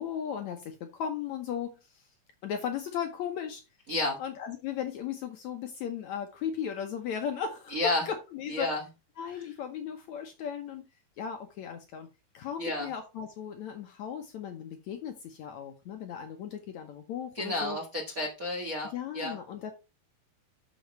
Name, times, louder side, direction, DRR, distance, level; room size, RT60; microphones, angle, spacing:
voice 1, 0.0-2.1 2.4-3.6 4.2-7.8 8.1-8.7 9.2-10.8 11.2-12.1 12.3-17.8 18.9-19.7, left 8 dB, 70° left, 1.8 m, -36 dB
voice 2, 7.7-8.0 8.5-8.8 9.3-9.5 12.6-12.9 17.3-19.4, left 2 dB, 50° right, 1.0 m, -31 dB
7.0 x 6.4 x 4.5 m
omnidirectional pair, 4.1 m